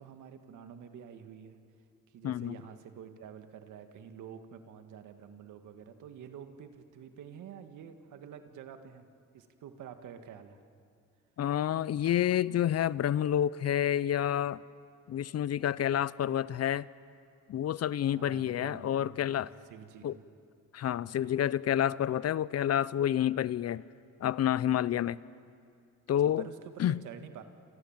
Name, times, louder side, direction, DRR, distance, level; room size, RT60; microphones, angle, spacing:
voice 1, 0.0-1.6 2.1-9.1 9.3-10.6 18.2-19.3 19.7-20.2 26.4-27.4, right 8 dB, 80° right, 7 dB, 1.9 m, -48 dB
voice 2, 2.2-2.6 11.4-14.6 15.1-16.9 17.5-19.5 20.0-20.2 20.7-23.8 24.2-25.2 26.1-26.5 26.8-27.0, left 10 dB, 55° left, 19 dB, 0.7 m, -29 dB
28.0 x 28.0 x 7.4 m, 2.4 s
cardioid pair, 90°, 30 cm